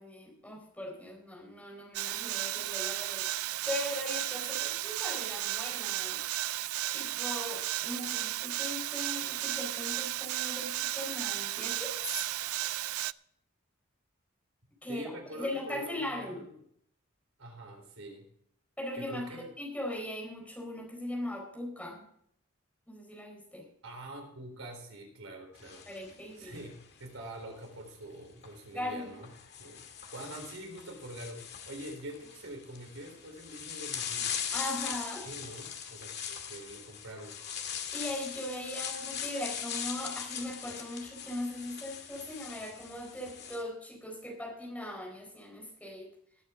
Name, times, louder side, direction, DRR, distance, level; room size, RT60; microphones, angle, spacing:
voice 1, 0.0-3.3 3.7-6.6 6.9-12.1 14.8-15.0 15.4-16.4 18.8-22.0 22.9-23.6 25.9-26.6 28.7-29.1 34.5-35.3 37.9-46.1, left 1 dB, 5° left, 0 dB, 4.2 m, -39 dB
sound 1, 1.9-13.1, right 15 dB, 90° right, 0.4 m, -34 dB
voice 2, 14.9-16.5 17.4-18.3 18.9-19.5 23.8-25.9 26.4-29.3 29.6-29.9 30.1-34.3 35.2-37.4, right 1 dB, 75° right, 3 dB, 3.8 m, -45 dB
sound 2, 25.6-27.1 28.3-28.5 29.2-43.6, left 8 dB, 50° left, 1.9 m, -40 dB
19.5 x 8.8 x 3.7 m, 0.66 s
head